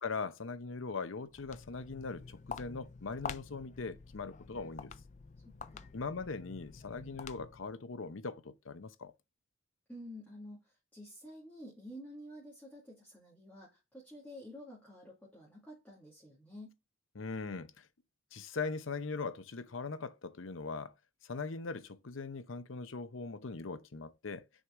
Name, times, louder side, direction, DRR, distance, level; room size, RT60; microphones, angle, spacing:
voice 1, 0.0-4.9 5.9-9.1 17.2-17.9 18.3-20.9 21.2-24.5, left 4 dB, 75° left, 0.7 m, -40 dB
Walk footsteps, 1.2-7.7, left 5 dB, 35° left, 0.3 m, -47 dB
voice 2, 5.4-5.9 9.9-16.8, equal, 10° left, 2.1 m, -50 dB
6.5 x 4.6 x 3.7 m
head